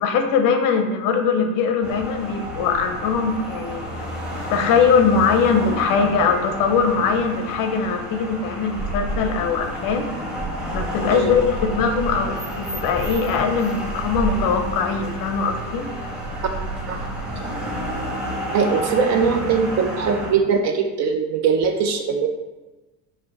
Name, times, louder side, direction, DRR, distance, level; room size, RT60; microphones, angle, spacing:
voice 1, 0.0-3.8 4.5-10.1 10.7-15.9, left 5 dB, 45° left, 5 dB, 0.6 m, -21 dB
sound 1, 1.8-20.3, right 1 dB, ahead, 1.2 m, -30 dB
voice 2, 18.5-22.3, right 6 dB, 35° right, 5 dB, 0.5 m, -21 dB
4.3 x 2.4 x 4.2 m, 1.1 s
hypercardioid pair, 70°, 48 cm